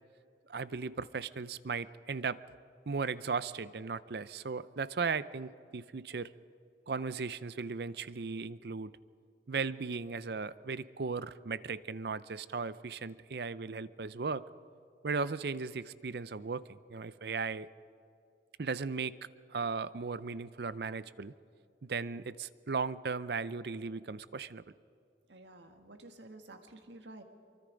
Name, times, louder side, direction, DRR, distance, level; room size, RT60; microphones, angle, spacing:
voice 1, 0.5-2.4 2.9-6.3 6.9-8.9 9.5-14.4 15.0-17.7 18.6-19.2 19.5-21.3 21.8-24.6, right 4 dB, 60° right, 17 dB, 0.5 m, -36 dB
voice 2, 25.3-27.2, right 2 dB, 85° right, 6 dB, 1.9 m, -51 dB
25.0 x 24.0 x 5.2 m, 2.5 s
head